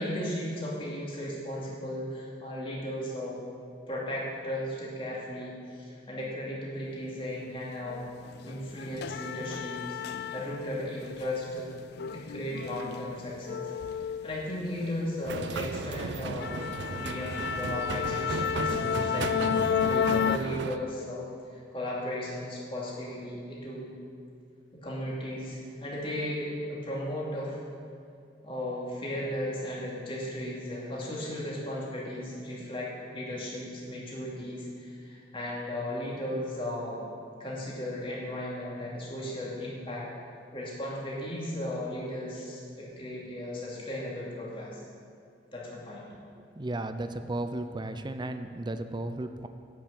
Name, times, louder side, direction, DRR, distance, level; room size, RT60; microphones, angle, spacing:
voice 1, 0.0-3.4 3.9-8.1 8.4-11.7 12.1-13.7 14.2-23.9 24.8-27.6 28.4-37.0 37.4-40.1 40.5-44.8 45.5-46.0, left 1 dB, 30° left, -5 dB, 2.7 m, -36 dB
sound 1, 7.9-8.0 8.4-10.8 11.1-14.9 15.3-15.5 15.9-16.0 16.4-20.4, left 7 dB, 60° left, 0.3 m, -31 dB
sound 2, 15.3-20.8, right 4 dB, 80° right, 0.5 m, -35 dB
voice 2, 46.6-49.5, right 1 dB, 25° right, 9 dB, 0.6 m, -34 dB
12.0 x 6.1 x 8.4 m, 2.3 s
head